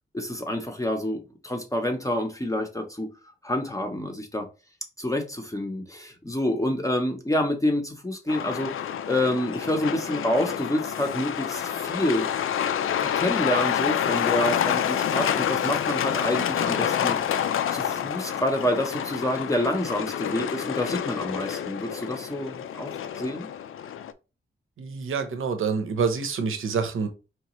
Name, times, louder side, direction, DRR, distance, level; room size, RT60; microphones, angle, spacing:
voice 1, 0.1-3.1 3.4-4.5 5.0-8.7 9.1-12.3 13.0-17.2 17.7-23.5, left 1 dB, 15° left, 0.6 m, -28 dB
Truck, 8.3-24.1, left 9 dB, 85° left, 0.4 m, -28 dB
voice 2, 24.8-27.1, right 5 dB, 80° right, 0.8 m, -27 dB
4.8 x 3.1 x 3.0 m
wide cardioid pair, 165°, 21 cm